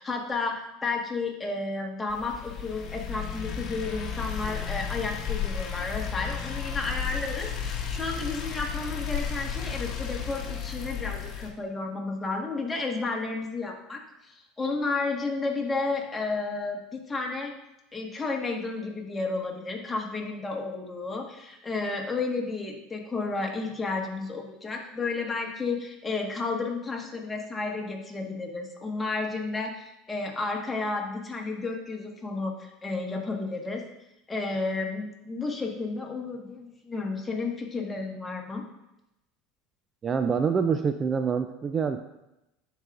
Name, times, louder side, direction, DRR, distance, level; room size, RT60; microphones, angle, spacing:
voice 1, 0.0-17.5 17.9-33.8 34.3-38.6, left 3 dB, 15° left, 0 dB, 1.5 m, -32 dB
sound 1, 2.1-11.5, left 7 dB, 45° left, 1.1 m, -33 dB
voice 2, 40.0-42.0, right 6 dB, 30° right, 8 dB, 0.4 m, -26 dB
11.5 x 4.8 x 2.5 m, 0.89 s
supercardioid pair, 95°, 0 cm